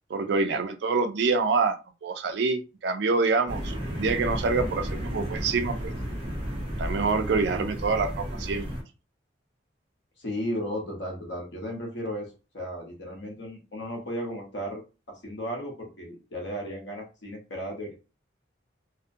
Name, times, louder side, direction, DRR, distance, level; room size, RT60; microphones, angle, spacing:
voice 1, 0.1-5.9 6.8-8.7, right 4 dB, 65° right, 7 dB, 0.4 m, -26 dB
sound 1, 3.5-8.8, equal, 25° right, 0.7 m, -33 dB
voice 2, 10.2-14.8 15.2-18.0, equal, 75° left, 1 dB, 0.9 m, -35 dB
2.4 x 2.1 x 2.6 m, 0.31 s
head